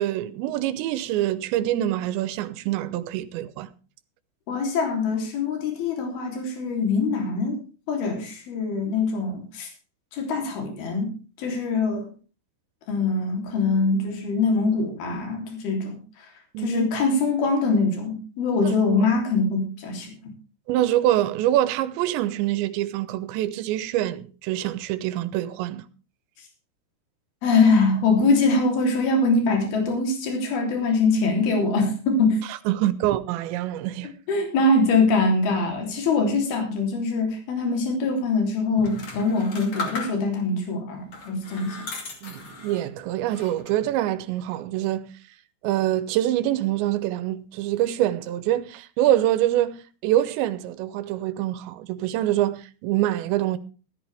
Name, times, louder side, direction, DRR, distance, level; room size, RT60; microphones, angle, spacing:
voice 1, 0.0-3.7 16.5-16.9 20.7-25.9 32.5-34.1 42.2-45.1 45.6-53.6, right 13 dB, 80° right, 2.9 m, -25 dB
voice 2, 4.5-7.6 7.9-9.7 10.1-11.1 11.4-12.1 12.9-16.0 16.6-20.1 27.4-32.4 34.3-41.9, left 3 dB, 55° left, 4.9 m, -23 dB
sound 1, 38.8-40.5 41.1-42.9 43.3-43.9, left 3 dB, 40° left, 3.0 m, -36 dB
14.5 x 13.5 x 3.4 m
omnidirectional pair, 5.4 m